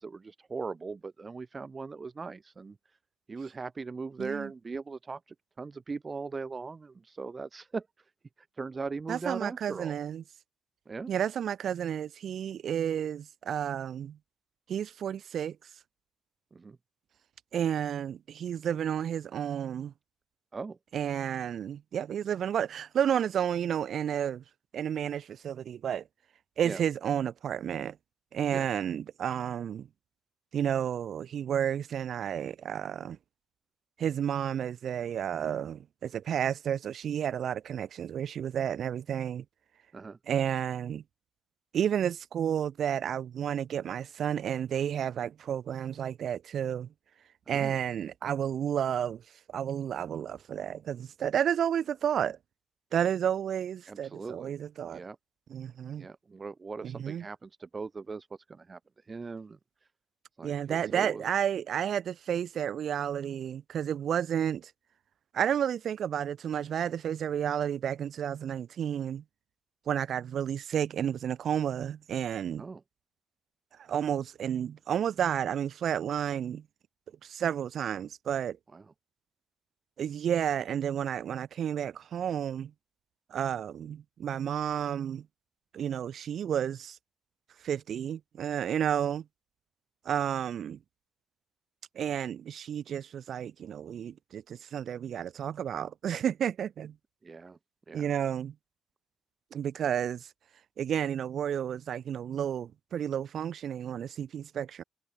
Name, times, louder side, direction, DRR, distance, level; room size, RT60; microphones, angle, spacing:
voice 1, 0.0-2.8 3.3-7.9 8.4-10.0 10.9-11.1 16.5-16.8 20.5-20.8 26.6-26.8 28.5-28.7 39.9-40.2 47.5-47.8 53.9-54.6 54.9-55.2 56.0-59.6 60.4-61.3 72.6-72.8 78.7-78.8 97.2-97.6 97.9-98.1, right 4 dB, 30° right, 2.0 m, -39 dB
voice 2, 4.2-4.5 9.1-10.2 11.1-14.2 14.7-15.6 17.5-19.9 20.9-24.4 24.7-26.0 26.6-28.0 28.3-29.9 30.5-33.2 34.0-39.4 40.3-41.0 41.7-46.9 47.5-49.2 49.5-52.4 52.9-55.0 55.5-56.1 56.8-57.3 60.4-64.7 65.3-69.2 69.9-72.7 73.8-76.6 77.2-78.6 80.0-82.7 83.3-85.3 85.7-87.0 87.6-89.2 90.0-90.8 91.9-97.0 97.9-98.5 99.5-100.3 100.8-104.8, right 9 dB, 60° right, 0.6 m, -31 dB
cardioid pair, 90°, 0 cm